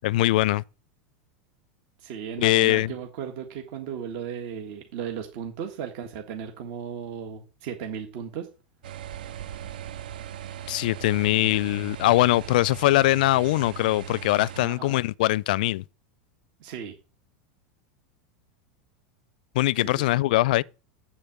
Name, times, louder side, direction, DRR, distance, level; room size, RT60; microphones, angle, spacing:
voice 1, 0.0-0.6 2.4-2.9 10.7-15.8 19.5-20.6, left 17 dB, 65° left, 0.4 m, -22 dB
voice 2, 2.0-8.5 14.6-15.0 16.6-16.9 19.7-20.2, right 8 dB, 60° right, 1.7 m, -36 dB
sound 1, 8.8-14.7, right 10 dB, 75° right, 0.6 m, -39 dB
7.7 x 7.2 x 7.1 m
hypercardioid pair, 90°, 5 cm